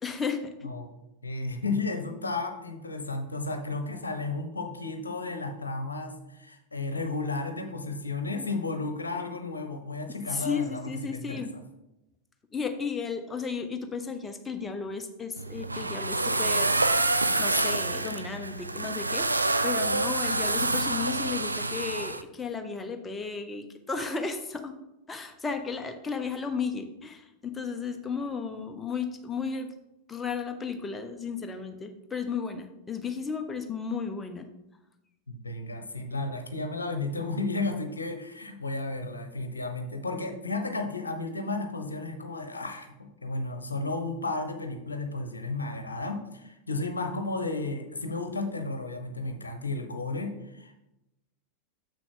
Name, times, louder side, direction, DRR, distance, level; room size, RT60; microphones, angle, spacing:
voice 1, 0.0-0.7 10.3-11.5 12.5-24.8 25.1-29.7 30.1-34.5, left 5 dB, 15° left, 6 dB, 0.8 m, -34 dB
voice 2, 1.2-11.5 35.3-50.9, left 3 dB, 80° left, 6 dB, 0.8 m, -33 dB
sound 1, 15.4-22.2, right 2 dB, 80° right, 0.4 m, -27 dB
6.8 x 6.1 x 3.8 m, 0.91 s
figure-of-eight pair, 90°, 0 cm